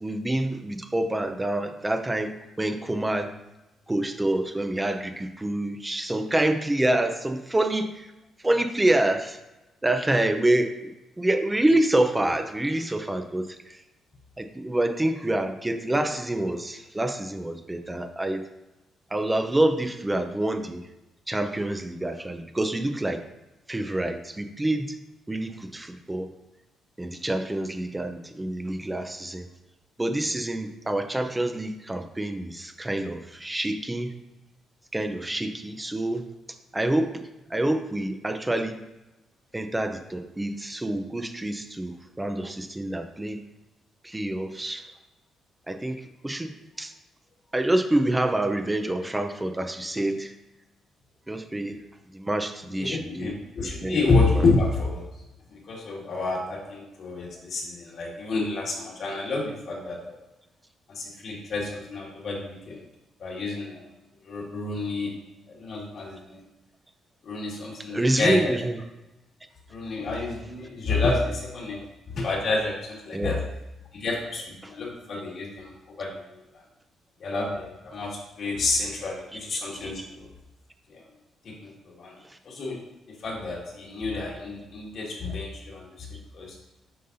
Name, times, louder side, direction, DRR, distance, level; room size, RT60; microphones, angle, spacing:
voice 1, 0.0-3.3 3.9-7.9 8.4-9.4 9.8-10.8 11.2-13.4 14.4-18.4 19.1-20.8 21.3-23.2 23.7-24.9 25.3-26.3 27.0-29.5 30.0-34.1 34.9-36.2 36.7-37.2 37.5-38.8 39.5-43.4 44.0-44.8 45.7-45.9 46.2-46.5 46.8-46.9 47.5-50.3 51.3-51.8 52.1-53.3 53.6-54.0 67.9-68.7 73.1-73.3 79.8-79.9, right 1 dB, 15° right, 6 dB, 0.6 m, -27 dB
voice 2, 52.7-55.0 55.5-60.2 60.9-62.9 63.2-63.8 64.2-65.1 65.5-66.4 67.2-68.6 69.7-71.8 72.1-73.4 73.9-75.7 76.0-76.1 76.5-76.6 77.2-80.3 80.9-81.0 81.4-82.1 82.5-82.8 83.1-86.1 86.3-86.6, left 3 dB, 60° left, -3 dB, 2.1 m, -29 dB
7.7 x 5.3 x 2.7 m, 0.99 s
cardioid pair, 90°, 0 cm